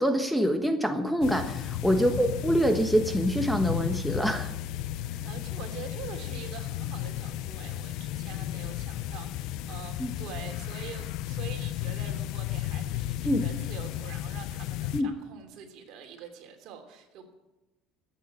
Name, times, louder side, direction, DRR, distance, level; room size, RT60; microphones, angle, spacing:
voice 1, 0.0-4.5 10.0-10.1 13.2-13.4 14.9-15.1, equal, ahead, 7 dB, 1.3 m, -25 dB
sound 1, 1.2-15.0, left 13 dB, 70° left, 0.6 m, -34 dB
voice 2, 1.9-2.4 5.2-17.3, right 7 dB, 65° right, 4 dB, 3.0 m, -45 dB
14.0 x 8.8 x 9.1 m, 1.1 s
supercardioid pair, 110°, 0 cm